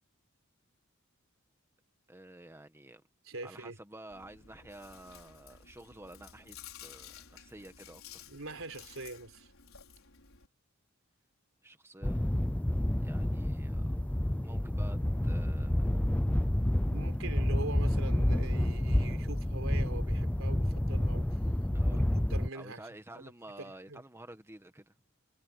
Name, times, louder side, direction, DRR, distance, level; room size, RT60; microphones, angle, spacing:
voice 1, 2.1-3.0 3.4-8.3 11.6-12.2 13.0-13.9 14.4-15.0 15.2-15.9 21.7-22.0 22.5-24.9, right 1 dB, 10° right, 1.6 m, -51 dB
voice 2, 3.2-3.8 8.3-9.5 16.9-21.4 21.9-22.8 23.1-23.3 23.6-24.0, right 2 dB, 75° right, 3.9 m, -43 dB
Chewing mastication, 4.1-10.5, left 8 dB, 85° left, 4.6 m, -53 dB
sound 1, 12.0-22.5, left 1 dB, 5° left, 0.4 m, -29 dB
head